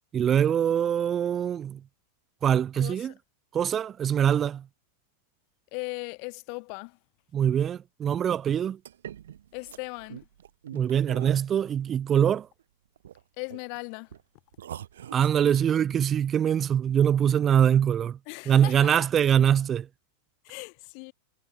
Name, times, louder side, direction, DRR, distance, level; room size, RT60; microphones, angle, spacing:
voice 1, 0.1-1.8 2.4-3.1 3.5-4.6 7.3-8.8 10.7-12.5 15.1-18.2 18.5-19.9, right 9 dB, 25° right, 0.6 m, -23 dB
voice 2, 2.8-3.1 5.7-7.0 9.5-10.2 13.4-14.1 18.3-19.0 20.4-21.1, left 40 dB or more, 45° left, 1.5 m, -38 dB
sound 1, 8.8-12.6 13.0-13.8 14.1-14.2 14.5-15.7, right 10 dB, 60° right, 0.9 m, -43 dB
figure-of-eight pair, 90°, 0 cm